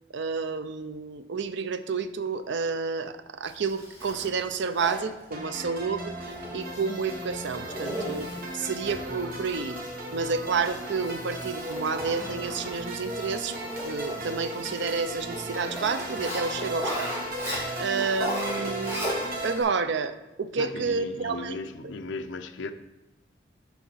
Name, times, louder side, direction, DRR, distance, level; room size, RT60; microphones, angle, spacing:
voice 1, 0.1-9.8 10.1-17.1 17.8-19.2 19.4-21.6 21.8-22.0, right 5 dB, 70° right, 11 dB, 0.6 m, -30 dB
Zipper (clothing), 3.4-19.6, equal, 15° right, 3.2 m, -38 dB
sound 1, 5.3-19.5, right 1 dB, 50° right, 1.5 m, -36 dB
sound 2, 6.6-18.5, left 4 dB, 40° left, 2.4 m, -55 dB
voice 2, 20.6-22.7, left 3 dB, 70° left, 8 dB, 0.6 m, -36 dB
6.9 x 5.9 x 5.8 m, 1.0 s
head